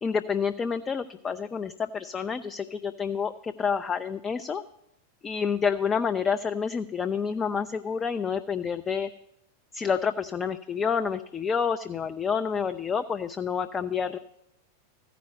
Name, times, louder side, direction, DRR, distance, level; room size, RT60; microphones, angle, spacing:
voice 1, 0.0-4.6 5.2-9.1 9.7-14.2, left 6 dB, 20° left, 10 dB, 0.3 m, -28 dB
14.5 x 5.1 x 7.7 m, 0.84 s
figure-of-eight pair, 90°, 0 cm